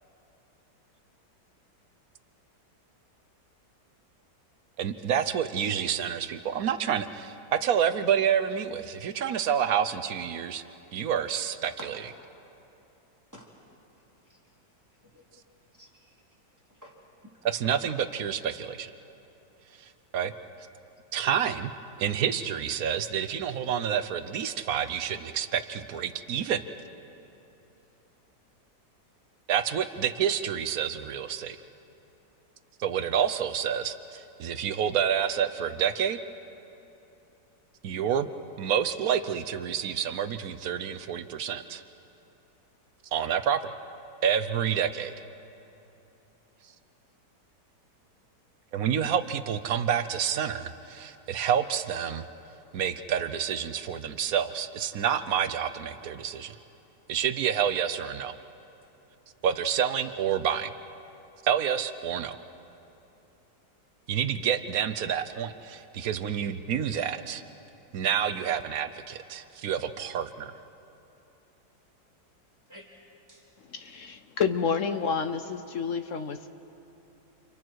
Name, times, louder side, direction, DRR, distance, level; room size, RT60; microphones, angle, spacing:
voice 1, 4.8-10.6 10.9-11.7 17.4-18.9 19.8-20.3 21.1-21.7 22.0-26.6 29.5-31.6 32.8-36.2 37.8-38.3 38.6-41.8 43.1-43.6 44.2-45.1 48.7-52.3 52.7-56.5 57.1-58.3 59.4-60.7 61.4-62.4 64.1-67.4 67.9-70.5, right 8 dB, 60° right, 11 dB, 1.1 m, -28 dB
voice 2, 15.0-15.4 15.7-16.2 16.6-17.3 20.8-20.9 52.7-52.8 58.6-58.7 72.7-73.0 73.3-73.5, equal, 10° right, -3 dB, 3.3 m, -51 dB
voice 3, 73.7-76.5, left 6 dB, 60° left, 9 dB, 0.9 m, -29 dB
30.0 x 28.5 x 4.7 m, 2.9 s
omnidirectional pair, 1.8 m